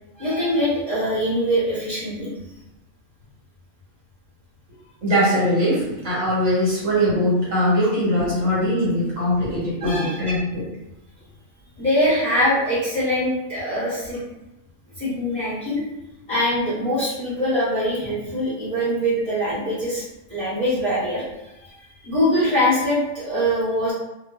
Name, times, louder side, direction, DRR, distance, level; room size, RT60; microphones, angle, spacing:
voice 1, 0.2-2.3 9.8-10.2 11.8-14.2 15.0-15.8 16.3-20.0 20.3-21.7 22.0-23.9, equal, 25° left, -12 dB, 0.9 m, -23 dB
voice 2, 5.0-10.7, equal, 70° right, -7 dB, 1.3 m, -21 dB
2.4 x 2.3 x 2.3 m, 0.95 s
omnidirectional pair, 1.5 m